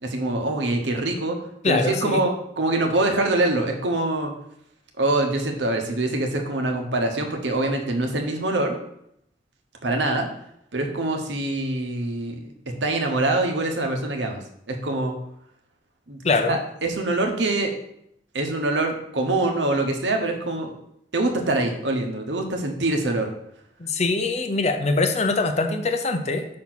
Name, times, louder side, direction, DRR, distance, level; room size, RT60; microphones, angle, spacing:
voice 1, 0.0-1.4 1.6-4.3 5.0-8.8 9.8-10.3 10.7-12.5 12.8-14.4 14.7-15.1 16.1-16.2 16.5-17.7 18.3-20.7 21.1-23.3, right 2 dB, 80° right, 3 dB, 1.2 m, -24 dB
voice 2, 1.6-2.2 16.2-16.6 23.8-26.5, left 3 dB, 40° left, 7 dB, 0.6 m, -23 dB
5.7 x 4.3 x 6.0 m, 0.76 s
head